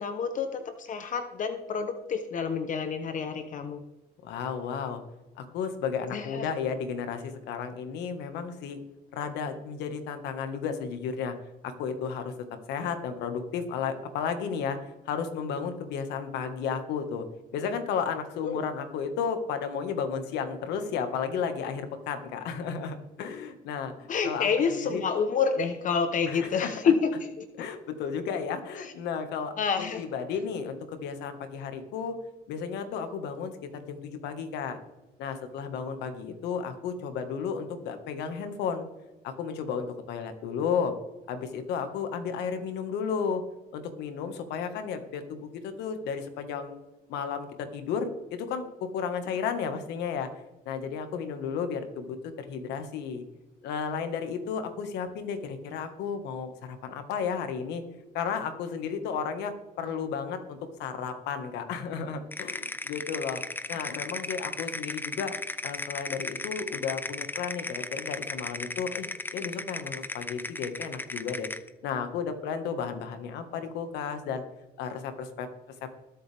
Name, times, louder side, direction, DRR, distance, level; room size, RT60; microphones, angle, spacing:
voice 1, 0.0-3.8 6.1-6.5 18.4-18.7 24.1-27.5 28.8-28.9 29.6-30.0 63.7-63.9, left 6 dB, 50° left, 8 dB, 1.0 m, -28 dB
voice 2, 4.2-5.0 5.4-8.8 9.1-11.3 11.6-12.3 12.7-17.3 17.5-25.0 26.3-26.7 27.6-32.2 32.5-34.8 35.2-38.9 39.2-41.0 41.3-43.4 43.7-46.8 47.1-50.3 50.7-53.2 53.6-57.8 58.1-63.4 63.7-65.3 65.6-71.5 71.8-74.4 74.8-75.5, left 6 dB, 85° left, 7 dB, 1.7 m, -33 dB
sound 1, 62.3-71.7, left 2 dB, 10° left, 0.7 m, -36 dB
21.0 x 7.8 x 3.5 m, 1.1 s
cardioid pair, 110°, 17 cm